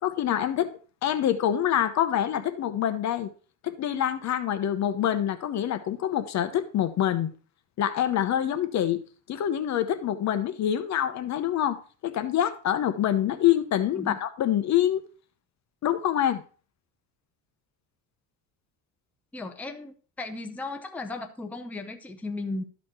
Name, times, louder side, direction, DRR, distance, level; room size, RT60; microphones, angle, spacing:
voice 1, 0.0-0.7 1.0-3.3 3.6-7.3 7.8-9.0 9.3-11.8 12.0-15.0 15.8-16.4, left 11 dB, 45° left, 0.8 m, -26 dB
voice 2, 19.3-22.6, left 2 dB, 5° left, 0.7 m, -36 dB
12.5 x 4.2 x 4.3 m
cardioid pair, 145°, 38 cm